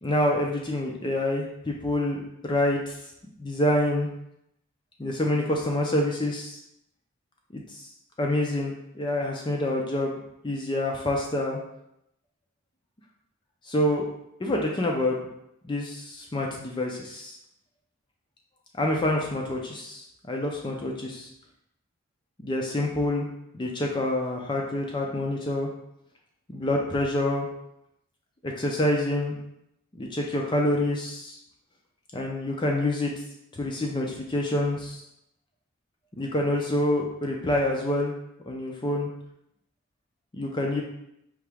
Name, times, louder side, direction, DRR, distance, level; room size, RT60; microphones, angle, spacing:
voice 1, 0.0-3.0 3.4-4.1 5.0-6.6 7.5-7.8 8.2-10.1 10.4-11.6 13.7-14.1 14.4-15.2 15.6-17.4 18.8-21.3 22.4-23.3 23.5-25.7 26.5-27.5 28.4-29.4 29.9-31.4 32.1-33.1 33.5-35.0 36.2-38.1 38.5-39.1 40.3-40.8, left 1 dB, 20° left, 0 dB, 0.4 m, -27 dB
4.7 x 2.8 x 3.4 m, 0.79 s
head